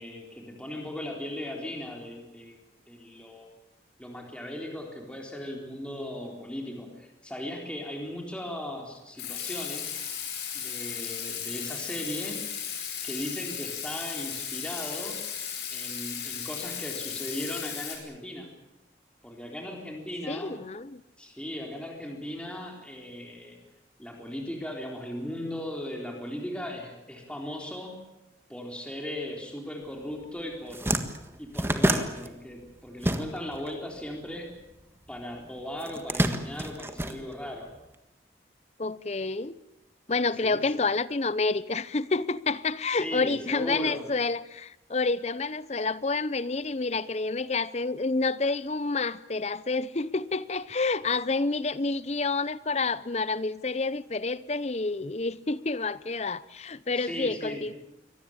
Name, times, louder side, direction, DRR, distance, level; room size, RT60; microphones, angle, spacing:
voice 1, 0.0-2.6 2.9-3.5 4.0-9.9 10.5-12.5 13.0-15.3 15.7-18.5 19.2-20.6 21.2-23.6 24.0-28.0 28.5-31.0 31.4-34.5 35.1-37.7 40.4-40.6 42.9-44.1 56.9-57.7, left 1 dB, 5° left, 3.8 m, -37 dB
Water tap faucet / Sink (filling or washing), 9.2-18.0, left 8 dB, 70° left, 5.8 m, -35 dB
voice 2, 20.3-21.0 38.8-39.6 40.1-57.7, left 3 dB, 35° left, 0.7 m, -29 dB
sound 1, 30.1-30.2 30.5-33.7 33.9-35.1 35.8-37.8, right 1 dB, 15° right, 1.5 m, -28 dB
24.0 x 18.5 x 8.8 m
head